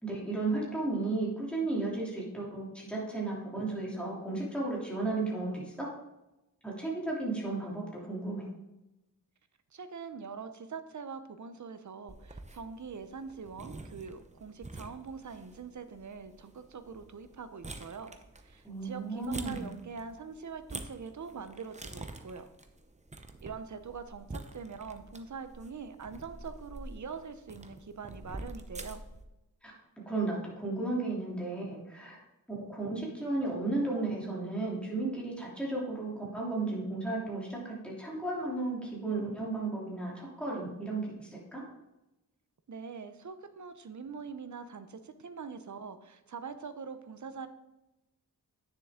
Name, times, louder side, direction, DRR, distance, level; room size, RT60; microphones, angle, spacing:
voice 1, 0.0-5.9 6.6-8.5 18.6-19.7 29.6-29.7 30.1-32.2 32.7-41.7, right 2 dB, 5° left, -5 dB, 3.1 m, -34 dB
voice 2, 9.7-18.1 18.4-22.5 23.2-29.0 42.7-47.5, right 5 dB, 55° right, 10 dB, 0.8 m, -43 dB
sound 1, 12.1-29.2, right 2 dB, 20° right, 0.7 m, -47 dB
9.6 x 6.8 x 3.7 m, 0.96 s
wide cardioid pair, 115°, 35 cm